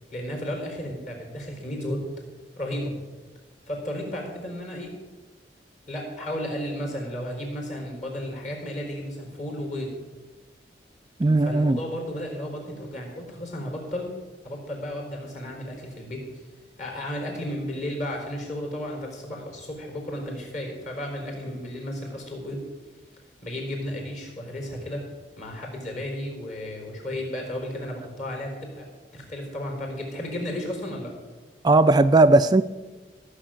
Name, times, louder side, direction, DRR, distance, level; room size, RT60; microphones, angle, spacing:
voice 1, 0.1-2.0 2.6-2.9 3.7-4.9 5.9-9.9 11.4-14.1 14.4-16.4 16.8-22.6 23.4-25.0 25.4-28.8 29.1-31.1, left 1 dB, 40° left, 1 dB, 4.4 m, -33 dB
voice 2, 11.2-11.8 31.6-32.6, right 2 dB, 25° right, 10 dB, 0.3 m, -17 dB
16.5 x 6.5 x 8.9 m, 1.3 s
head